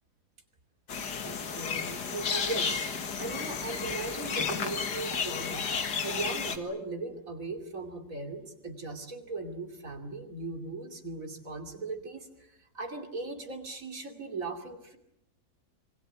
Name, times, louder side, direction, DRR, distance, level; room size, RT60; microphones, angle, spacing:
sound 1, 0.9-6.6, left 6 dB, 80° left, 2.3 m, -32 dB
voice 1, 1.2-2.9 3.2-5.7 6.0-15.0, right 3 dB, 55° right, 4 dB, 3.1 m, -38 dB
26.5 x 22.5 x 8.1 m, 0.84 s
omnidirectional pair, 1.8 m